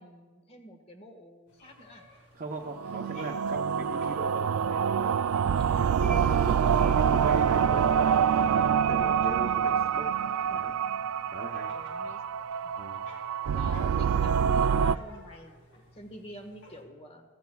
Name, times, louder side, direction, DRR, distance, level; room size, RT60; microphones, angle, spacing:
voice 1, 0.0-2.0 5.6-6.3 11.7-12.2 12.6-12.7 13.5-17.2, left 1 dB, 30° left, 5 dB, 1.5 m, -48 dB
sound 1, 1.5-16.8, left 1 dB, 70° left, 4.6 m, -56 dB
voice 2, 2.3-5.2 6.2-8.1 8.4-10.1 10.5-10.7 11.3-11.7 12.8-13.1, right 3 dB, 40° right, 1 dB, 0.8 m, -40 dB
sound 2, 2.7-15.0, right 7 dB, 75° right, 0.3 m, -26 dB
sound 3, 6.0-9.2, right 1 dB, 5° left, 0.4 m, -41 dB
24.5 x 15.0 x 2.3 m, 1.4 s
head